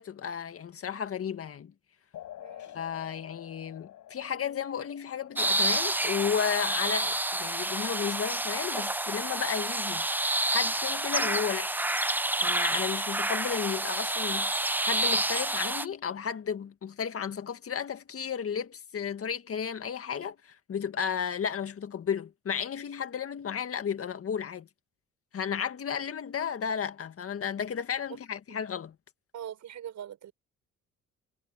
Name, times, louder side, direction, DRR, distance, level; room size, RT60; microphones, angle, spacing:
voice 1, 0.0-1.7 2.7-11.8 12.4-24.7 25.3-29.0, left 7 dB, 50° left, 1.9 m, -33 dB
sound 1, 2.1-9.2, left 12 dB, 75° left, 6.8 m, -50 dB
voice 2, 2.4-2.8 29.3-30.3, right 10 dB, 70° right, 5.9 m, -42 dB
sound 2, 5.4-15.8, right 1 dB, 5° right, 0.6 m, -29 dB
cardioid pair, 90°, 30 cm